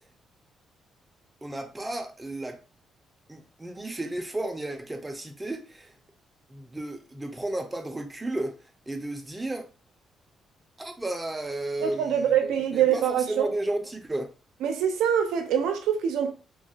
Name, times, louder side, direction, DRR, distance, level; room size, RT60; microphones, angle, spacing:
voice 1, 1.4-2.6 3.3-5.9 6.5-8.6 8.9-9.7 10.8-14.3, right 2 dB, 15° right, 0.6 m, -33 dB
voice 2, 11.8-13.5 14.6-16.3, right 9 dB, 90° right, 0.5 m, -24 dB
2.8 x 2.4 x 2.8 m
cardioid pair, 90°, 0 cm